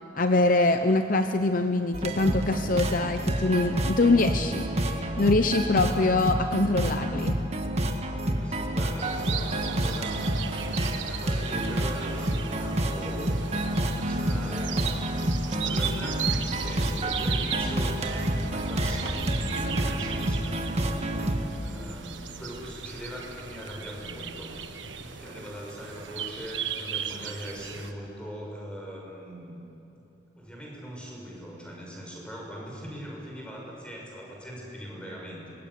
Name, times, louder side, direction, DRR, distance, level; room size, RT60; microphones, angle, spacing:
voice 1, 0.1-7.4, left 2 dB, 45° left, 7 dB, 0.9 m, -24 dB
sound 1, 1.9-21.5, right 1 dB, 35° right, 1.7 m, -29 dB
voice 2, 8.0-13.4 13.7-24.7 25.0-29.5 30.4-35.6, equal, 5° left, -2 dB, 6.3 m, -41 dB
sound 2, 9.0-27.9, right 7 dB, 85° right, 1.5 m, -37 dB
sound 3, 16.0-24.7, equal, 65° left, 4.0 m, -41 dB
25.5 x 21.0 x 9.7 m, 2.9 s
head